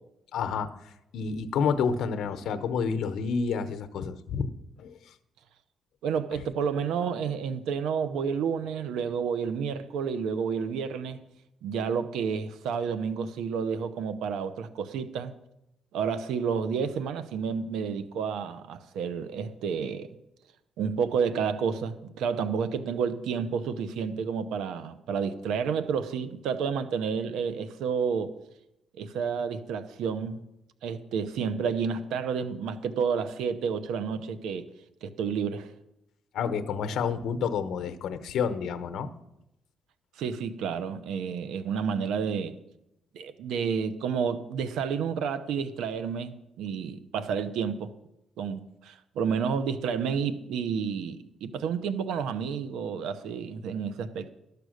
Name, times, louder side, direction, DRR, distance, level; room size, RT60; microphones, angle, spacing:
voice 1, 0.3-4.5 4.8-5.1 36.3-39.1, left 6 dB, 70° left, 0.9 m, -29 dB
voice 2, 6.0-11.2 11.6-15.3 15.9-20.1 20.8-28.3 29.0-30.4 30.8-34.7 35.0-35.7 40.2-42.6 43.1-47.9 48.4-54.3, right 6 dB, 85° right, 0.8 m, -30 dB
12.0 x 6.8 x 6.4 m
cardioid pair, 90°, 0 cm